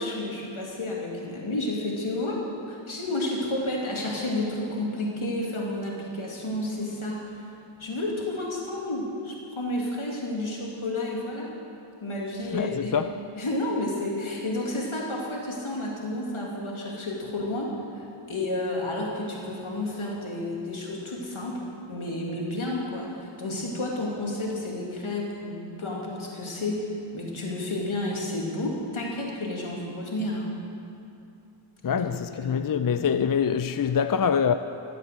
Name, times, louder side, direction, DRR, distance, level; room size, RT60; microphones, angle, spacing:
voice 1, 0.0-7.3 7.8-11.5 12.0-12.9 13.4-30.5 31.9-32.1 32.3-32.8, left 1 dB, 80° left, 2.6 m, -31 dB
voice 2, 12.5-13.1 31.8-34.6, left 7 dB, 45° left, 0.5 m, -25 dB
14.5 x 8.0 x 8.0 m
wide cardioid pair, 40°, 49 cm